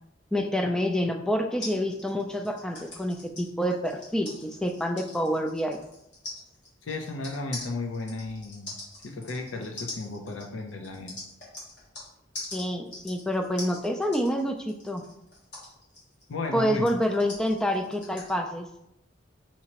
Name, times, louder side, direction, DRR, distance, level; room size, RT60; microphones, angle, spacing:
voice 1, 0.3-5.8 12.5-15.0 16.5-18.7, equal, 5° left, 3 dB, 0.3 m, -27 dB
sound 1, 1.6-12.1 12.3-18.3, left 2 dB, 60° left, 1.7 m, -42 dB
voice 2, 6.8-8.7 9.0-11.2 16.3-16.9, left 3 dB, 85° left, 4 dB, 0.5 m, -34 dB
5.5 x 2.9 x 2.8 m, 0.80 s
head